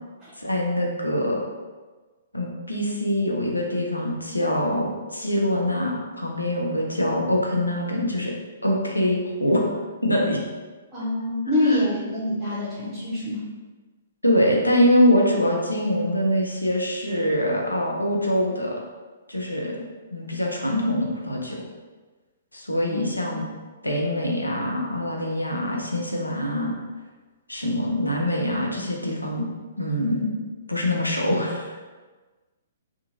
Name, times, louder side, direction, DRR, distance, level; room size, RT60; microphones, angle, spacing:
voice 1, 0.4-1.4 2.3-8.3 8.6-9.7 10.0-10.4 11.6-11.8 14.2-18.8 19.3-19.8 20.1-21.6 22.5-23.4 23.8-26.7 27.5-29.5 29.8-30.4 30.7-31.7, left 1 dB, 90° left, -1 dB, 0.5 m, -24 dB
voice 2, 10.9-13.4 22.9-23.0 23.4-23.5, left 1 dB, 10° right, -14 dB, 0.8 m, -25 dB
2.7 x 2.4 x 2.5 m, 1.3 s
figure-of-eight pair, 120°, 0 cm